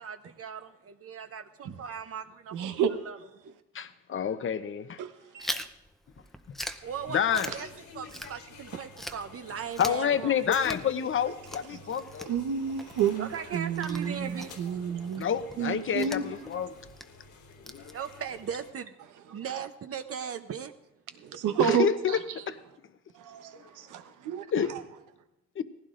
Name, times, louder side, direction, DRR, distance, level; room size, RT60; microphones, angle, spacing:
voice 1, 0.0-3.5 6.8-7.7 7.9-10.4 13.2-14.6 17.9-19.0 19.3-20.7 24.0-24.1, right 7 dB, 50° right, 0.8 m, -38 dB
voice 2, 2.5-2.9 5.0-5.6 12.3-15.3 15.6-16.3 21.2-22.2 23.2-24.8, right 7 dB, 85° right, 1.1 m, -30 dB
voice 3, 3.7-5.0 7.1-7.5 9.8-12.3 15.1-16.7 17.7-17.9 21.6-22.2 22.5-22.6 24.5-24.7 25.6-25.7, left 8 dB, 45° left, 0.8 m, -28 dB
Chewing mastication, 5.4-8.7 9.0-18.4, equal, ahead, 0.7 m, -43 dB
sound 1, 6.8-18.7, left 4 dB, 90° left, 3.3 m, -51 dB
18.5 x 15.5 x 2.5 m
cardioid pair, 90°, 30 cm